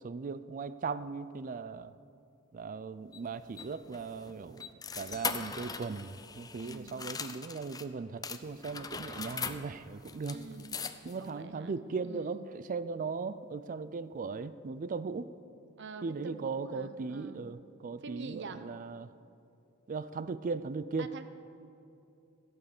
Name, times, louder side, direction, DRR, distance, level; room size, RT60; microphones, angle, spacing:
voice 1, 0.0-1.9 2.5-10.4 11.0-15.3 16.0-19.1 19.9-21.1, right 4 dB, 40° right, 15 dB, 0.4 m, -38 dB
sound 1, 3.1-7.9 8.2-11.3, left 5 dB, 20° left, 0.5 m, -41 dB
voice 2, 6.6-7.1 10.3-10.8 11.2-12.5 15.8-17.4 18.0-18.6 21.0-21.3, right 4 dB, 60° right, 10 dB, 0.8 m, -46 dB
14.5 x 8.3 x 6.6 m, 2.7 s
head